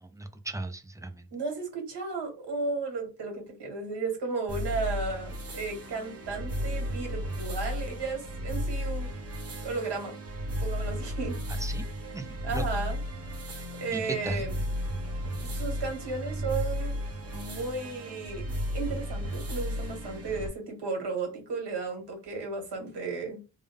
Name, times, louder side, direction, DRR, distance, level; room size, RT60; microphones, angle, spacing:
voice 1, 0.0-1.3 11.6-11.8 12.1-12.3 12.5-12.6 13.9-14.5, right 1 dB, 10° right, 0.4 m, -36 dB
voice 2, 1.3-9.1 9.6-10.1 10.6-11.4 12.4-13.0 13.8-14.6 15.4-17.0 17.3-18.4 18.7-23.4, right 4 dB, 70° right, 1.7 m, -34 dB
sound 1, 4.5-20.5, equal, 35° right, 1.1 m, -34 dB
3.6 x 2.1 x 3.5 m
wide cardioid pair, 105°, 41 cm